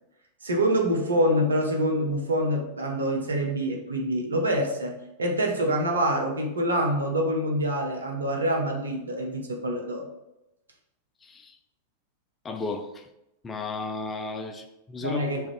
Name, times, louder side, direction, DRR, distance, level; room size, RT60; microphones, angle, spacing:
voice 1, 0.4-10.1 15.0-15.4, equal, 75° right, 0.6 m, -26 dB
voice 2, 11.2-11.6 12.4-13.1 13.4-15.2, left 3 dB, 20° left, 0.3 m, -34 dB
3.0 x 2.5 x 3.2 m
figure-of-eight pair, 90°, 0 cm